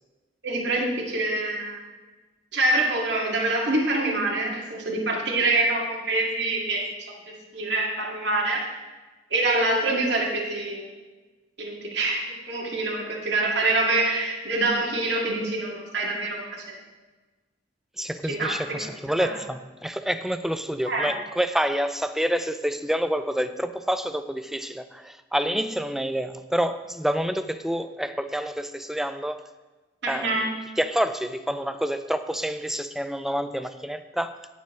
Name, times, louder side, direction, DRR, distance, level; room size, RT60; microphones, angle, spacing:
voice 1, 0.4-1.8 2.5-6.9 7.5-8.6 9.3-10.9 11.6-16.7 18.3-18.6 19.2-19.4 20.9-21.1 30.0-30.5, right 2 dB, 65° right, -2 dB, 2.3 m, -25 dB
voice 2, 18.0-29.4 30.1-34.4, equal, ahead, 10 dB, 0.4 m, -28 dB
18.0 x 7.1 x 3.3 m, 1.2 s
head